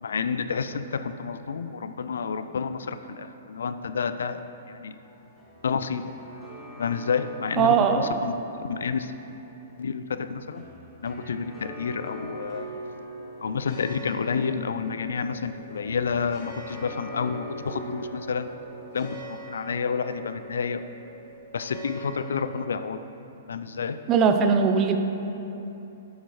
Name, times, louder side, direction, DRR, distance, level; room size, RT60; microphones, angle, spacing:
voice 1, 0.0-4.4 4.7-5.0 5.6-6.0 6.8-8.3 8.6-9.1 9.8-10.6 11.0-12.7 13.4-18.5 18.9-20.9 21.5-23.0 23.5-24.0, left 6 dB, 75° left, 10 dB, 0.4 m, -29 dB
sound 1, 5.0-20.2, right 1 dB, 5° left, 1.7 m, -44 dB
voice 2, 7.6-8.2 24.1-25.0, right 6 dB, 30° right, 7 dB, 0.6 m, -20 dB
sound 2, 12.4-22.7, right 2 dB, 40° left, 1.7 m, -45 dB
10.0 x 8.1 x 3.2 m, 3.0 s
hypercardioid pair, 120°, 0 cm